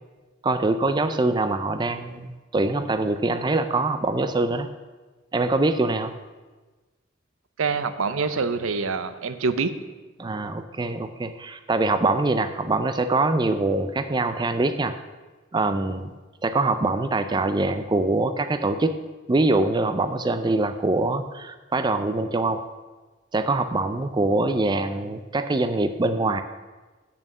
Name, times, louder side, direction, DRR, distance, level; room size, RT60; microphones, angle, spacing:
voice 1, 0.4-4.7 5.3-6.1 10.2-14.9 15.5-16.1 16.4-18.9 19.3-22.6 23.3-26.4, right 2 dB, 20° right, 9 dB, 0.4 m, -24 dB
voice 2, 7.6-9.7, right 4 dB, 85° right, 11 dB, 0.7 m, -25 dB
8.6 x 7.0 x 6.6 m, 1.3 s
head